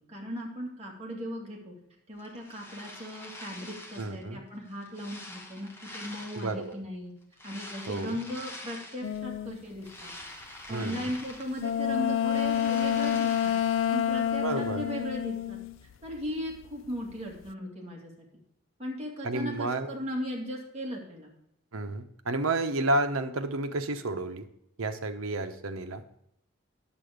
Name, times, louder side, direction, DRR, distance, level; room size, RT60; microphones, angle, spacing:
voice 1, 0.1-1.7 2.1-7.1 7.4-10.1 10.7-13.5 13.9-15.6 16.0-18.3 18.8-21.3, equal, 30° right, -2 dB, 2.3 m, -37 dB
sound 1, 2.2-4.2 4.7-6.7 7.3-9.2 9.6-11.8 12.1-14.0, left 1 dB, 10° left, 1.1 m, -45 dB
voice 2, 4.0-4.4 6.3-6.8 7.9-8.2 10.7-11.1 14.4-14.8 19.2-19.9 21.7-24.4 24.8-26.0, right 2 dB, 90° right, 8 dB, 0.9 m, -31 dB
sound 2, 9.0-9.6 11.6-16.3 16.5-17.3, left 10 dB, 70° left, 0.4 m, -28 dB
9.7 x 7.6 x 5.1 m, 0.79 s
head